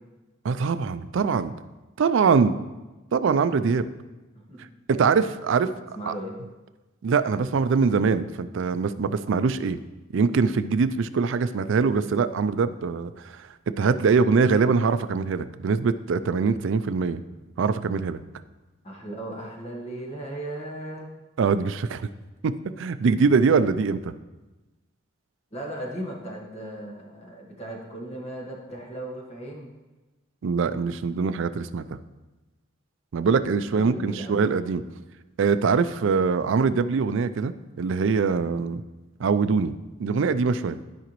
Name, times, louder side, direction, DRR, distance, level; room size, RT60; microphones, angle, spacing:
voice 1, 0.4-1.5 2.0-2.5 3.1-3.9 4.9-5.7 6.1-6.2 7.0-9.8 10.1-13.5 13.8-17.2 17.6-18.2 21.4-22.1 22.4-22.5 22.8-24.1 30.4-31.8 33.1-34.8 35.4-37.5 37.8-38.8 39.2-39.7 40.0-40.8, right 5 dB, 65° right, 12 dB, 0.4 m, -23 dB
voice 2, 5.6-6.4 18.8-21.1 25.5-29.7 33.7-34.5, right 1 dB, 30° left, -1 dB, 1.6 m, -36 dB
13.0 x 5.0 x 3.1 m, 1.1 s
head